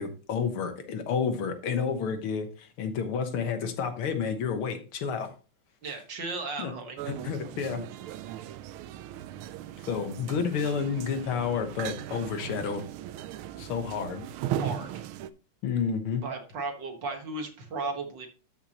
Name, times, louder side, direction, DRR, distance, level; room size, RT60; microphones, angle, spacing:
voice 1, 0.0-5.3 6.6-6.7 7.1-7.9 9.9-12.8 13.6-14.2 15.6-16.2, left 6 dB, 80° left, 7 dB, 2.1 m, -30 dB
voice 2, 5.8-7.0 14.6-15.0 16.2-18.3, right 3 dB, 60° right, 4 dB, 2.1 m, -35 dB
sound 1, 7.0-15.3, right 11 dB, 85° right, 1.5 m, -38 dB
13.0 x 5.8 x 2.9 m, 0.36 s
omnidirectional pair, 2.3 m